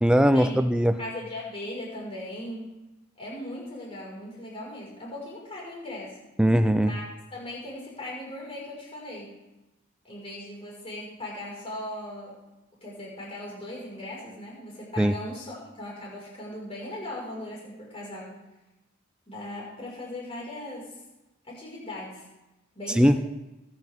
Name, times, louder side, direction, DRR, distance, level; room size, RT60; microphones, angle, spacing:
voice 1, 0.0-1.0 6.4-6.9 15.0-15.1 23.0-23.2, equal, 5° right, 10 dB, 0.5 m, -20 dB
voice 2, 1.0-2.7 3.2-6.2 6.8-7.0 7.3-9.4 10.0-12.4 12.8-18.3 19.3-21.0 21.4-22.2 22.7-23.2, left 1 dB, 25° left, -5 dB, 5.6 m, -38 dB
23.0 x 10.0 x 3.8 m, 1.0 s
head